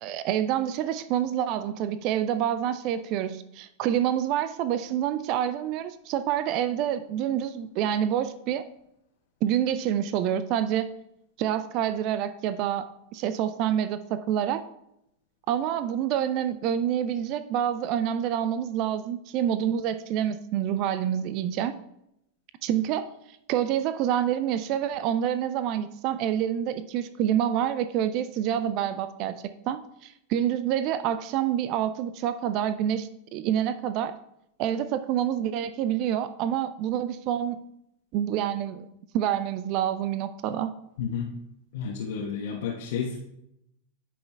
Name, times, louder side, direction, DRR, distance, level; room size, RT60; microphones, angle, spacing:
voice 1, 0.0-8.6 9.4-10.9 11.4-12.9 13.1-14.6 15.5-21.7 22.6-23.1 23.5-34.2 34.6-37.6 38.1-38.9 39.1-40.7, right 10 dB, 40° right, 13 dB, 0.4 m, -27 dB
voice 2, 41.0-41.3 41.7-43.2, left 6 dB, 55° left, -4 dB, 1.2 m, -31 dB
15.0 x 5.9 x 2.3 m, 0.80 s
figure-of-eight pair, 90°, 0 cm